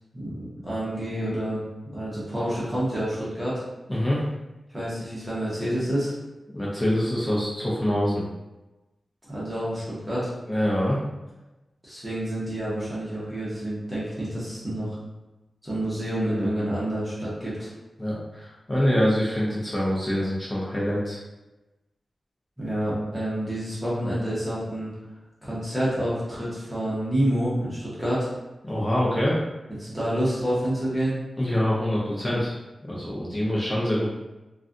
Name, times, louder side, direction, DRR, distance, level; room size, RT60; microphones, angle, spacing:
voice 1, 0.1-1.6 1.9-3.6 4.7-6.1 9.3-10.3 11.8-15.0 15.6-17.7 22.6-24.9 25.4-28.3 29.8-31.2, right 1 dB, 10° right, -9 dB, 1.1 m, -28 dB
voice 2, 3.9-4.2 6.5-8.2 10.5-11.0 18.0-21.2 28.6-29.4 31.4-32.5 32.9-34.1, equal, 25° left, -6 dB, 0.7 m, -25 dB
3.2 x 2.4 x 2.6 m, 1.1 s
wide cardioid pair, 120°, 0 cm